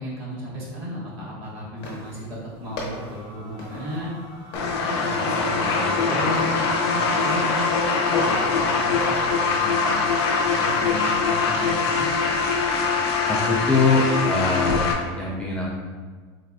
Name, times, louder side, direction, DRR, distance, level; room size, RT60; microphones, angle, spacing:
voice 1, 0.0-4.2 4.6-7.7 8.0-8.3 8.6-12.1, left 1 dB, 55° right, -7 dB, 1.4 m, -35 dB
sound 1, 1.8-12.6, left 2 dB, 60° left, 0.9 m, -41 dB
sound 2, 2.6-7.8, right 2 dB, 30° right, 0.7 m, -43 dB
sound 3, 4.5-14.9, left 4 dB, 80° left, 0.5 m, -22 dB
voice 2, 13.3-14.9 15.2-15.6, left 3 dB, 5° left, -6 dB, 0.3 m, -22 dB
4.1 x 2.2 x 2.3 m, 1.5 s
supercardioid pair, 150°, 13 cm